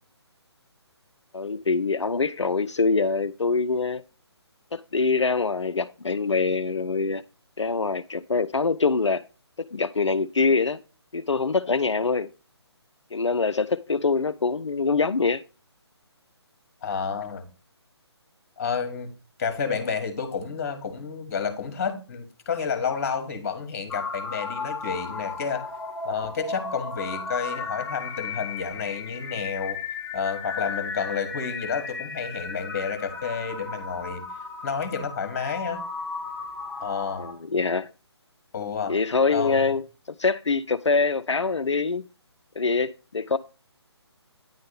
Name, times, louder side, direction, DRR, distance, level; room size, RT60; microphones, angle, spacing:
voice 1, 1.3-4.0 4.7-7.2 7.6-9.2 9.6-10.8 11.1-12.3 13.1-15.4 37.2-37.9 38.9-42.1 42.6-43.4, left 4 dB, 85° left, 0.4 m, -24 dB
voice 2, 16.8-17.4 18.6-19.1 19.4-25.7 26.0-29.8 30.1-34.3 34.6-35.8 36.8-37.3 38.5-39.0 39.3-39.7, left 6 dB, 35° left, 1.5 m, -30 dB
sound 1, 23.9-37.3, left 4 dB, 5° left, 0.9 m, -35 dB
9.5 x 3.5 x 5.3 m
figure-of-eight pair, 145°, 15 cm